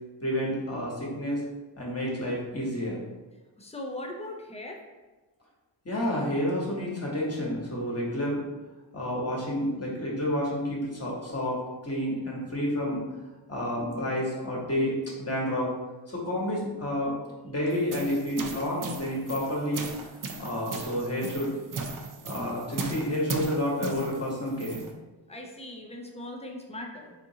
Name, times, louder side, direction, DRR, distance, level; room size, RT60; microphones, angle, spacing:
voice 1, 0.2-1.4 1.8-3.0 5.8-8.4 8.9-13.0 13.5-15.8 16.1-17.2 17.4-19.9 20.4-21.5 22.2-24.8, left 1 dB, 30° left, -4 dB, 1.1 m, -30 dB
voice 2, 3.6-4.8 25.3-27.1, left 1 dB, 15° left, 2 dB, 0.4 m, -39 dB
sound 1, 17.7-24.9, right 3 dB, 45° right, 0.5 m, -37 dB
3.7 x 2.5 x 2.7 m, 1.2 s
wide cardioid pair, 60°, 47 cm